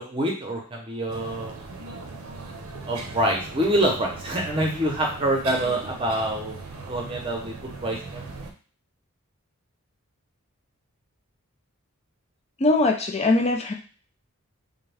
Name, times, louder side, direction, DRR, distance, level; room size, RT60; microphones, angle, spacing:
voice 1, 0.0-1.5 2.9-6.6 6.8-8.5, right 1 dB, 25° right, -1 dB, 0.8 m, -26 dB
sound 1, 1.1-8.5, right 3 dB, 80° right, 0.6 m, -38 dB
voice 2, 12.6-13.7, left 2 dB, 30° left, 3 dB, 0.4 m, -21 dB
3.5 x 2.2 x 3.4 m, 0.39 s
head